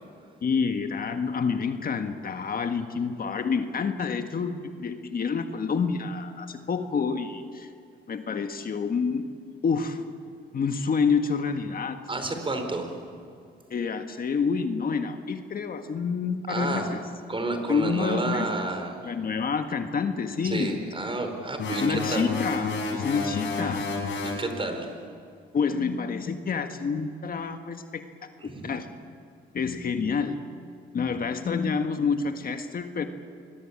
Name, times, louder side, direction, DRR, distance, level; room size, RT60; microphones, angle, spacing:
voice 1, 0.4-7.7 8.1-9.2 9.6-10.0 10.5-12.0 13.7-17.0 17.7-18.5 19.0-20.8 21.8-23.9 25.5-28.3 28.6-28.9 29.5-30.4 30.9-33.1, left 5 dB, 45° left, 7 dB, 1.7 m, -28 dB
voice 2, 12.1-12.9 16.5-16.9 17.3-19.0 20.4-22.3 24.4-24.9 28.4-28.8, right 2 dB, 25° right, 5 dB, 4.8 m, -30 dB
sound 1, 21.6-24.4, left 3 dB, 65° left, 7.9 m, -30 dB
25.5 x 22.0 x 8.7 m, 2.3 s
cardioid pair, 90°, 20 cm